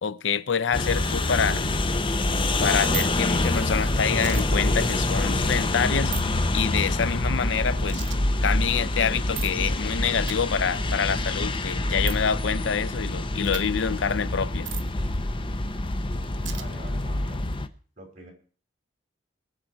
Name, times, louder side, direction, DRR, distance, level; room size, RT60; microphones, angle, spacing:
voice 1, 0.0-1.6 2.6-6.2 6.5-8.0 8.4-14.7, left 6 dB, 75° left, 0.5 m, -26 dB
sound 1, 0.7-17.7, left 2 dB, 30° left, 0.7 m, -26 dB
sound 2, 2.8-3.1 4.1-4.4 6.1-6.2 7.9-8.2 9.3-9.5 10.3-10.4 12.1-12.2 13.4-13.6 14.6-14.8 16.4-16.6, right 13 dB, 85° right, 1.2 m, -34 dB
voice 2, 16.3-17.4 18.0-18.3, right 2 dB, 40° right, 5.5 m, -46 dB
21.5 x 7.6 x 4.5 m
head